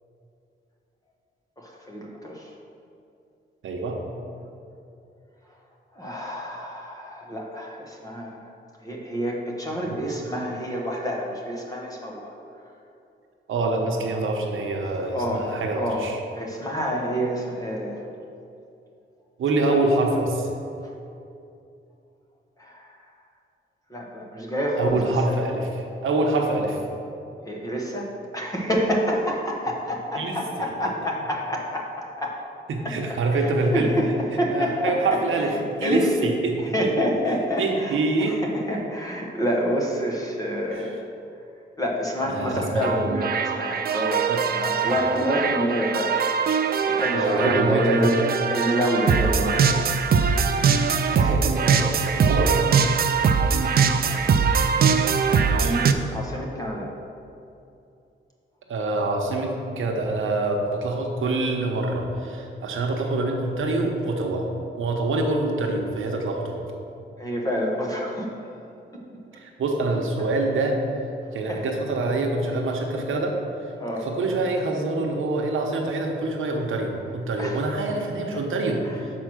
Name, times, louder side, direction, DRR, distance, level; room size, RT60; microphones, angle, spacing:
voice 1, 1.6-2.5 5.9-8.5 8.8-12.3 15.1-15.5 15.7-16.0 16.3-18.0 19.7-19.8 20.8-20.9 22.6-22.9 23.9-25.4 27.4-32.5 32.8-33.0 33.3-35.5 35.8-36.3 36.7-41.0 41.8-46.2 46.9-48.1 48.5-50.1 51.2-51.4 53.5-53.7 54.0-54.3 55.3-56.9 67.2-68.4 68.9-69.1 71.5-71.6 73.8-74.1 74.5-74.6 77.4-77.6 78.8-79.0, equal, 15° left, -2 dB, 1.0 m, -28 dB
voice 2, 3.6-4.0 9.8-10.0 13.5-16.2 19.4-20.5 24.8-26.8 30.2-30.3 32.7-33.9 34.5-35.5 35.8-36.5 37.6-38.4 40.7-40.9 42.3-43.0 44.3-44.4 47.1-48.3 51.1-52.6 55.4-55.9 58.7-64.5 64.8-66.6 69.4-70.8 71.3-73.4 74.0-78.8, right 2 dB, 80° right, 1 dB, 0.9 m, -25 dB
sound 1, 42.8-55.9, right 6 dB, 50° right, 0.4 m, -22 dB
6.1 x 4.5 x 6.2 m, 2.7 s
wide cardioid pair, 150°, 20 cm